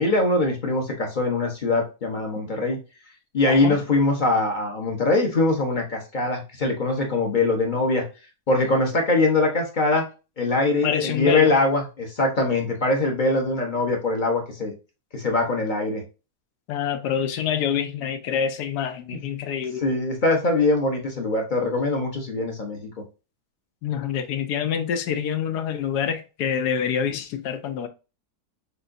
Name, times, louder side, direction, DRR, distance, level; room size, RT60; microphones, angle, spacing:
voice 1, 0.0-2.8 3.3-8.0 8.5-10.1 10.4-14.7 15.1-16.0 19.1-19.2 19.8-22.8, left 2 dB, 40° left, 0.8 m, -22 dB
voice 2, 3.4-3.8 10.8-11.6 16.7-19.8 23.8-27.9, left 8 dB, 80° left, 1.2 m, -26 dB
6.7 x 2.5 x 2.5 m
omnidirectional pair, 1.7 m